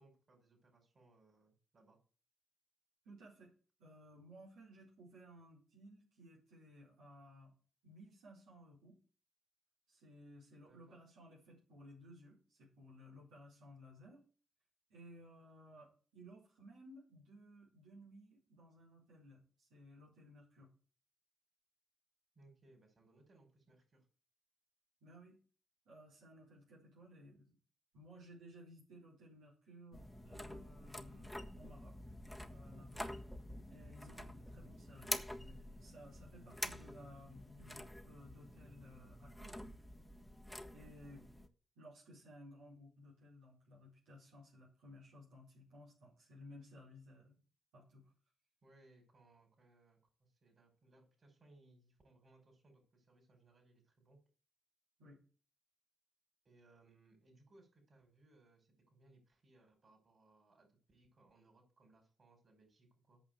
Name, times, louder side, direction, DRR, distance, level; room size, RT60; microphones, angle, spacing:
voice 1, 0.0-2.0 10.7-11.0 22.4-24.1 41.2-41.4 48.6-54.2 56.4-63.2, right 2 dB, 50° right, 3 dB, 5.5 m, -67 dB
voice 2, 3.0-3.5 3.8-7.5 7.8-9.0 9.9-14.2 14.9-15.9 16.1-20.7 25.0-25.4 25.8-27.6 27.9-32.0 32.5-33.1 33.7-39.7 40.7-41.2 41.8-47.4 47.7-48.1 55.0-55.2, equal, 85° right, -6 dB, 4.3 m, -58 dB
sound 1, 29.9-41.5, left 1 dB, 5° left, 1.4 m, -48 dB
8.7 x 6.1 x 7.9 m, 0.39 s
supercardioid pair, 45°, 0 cm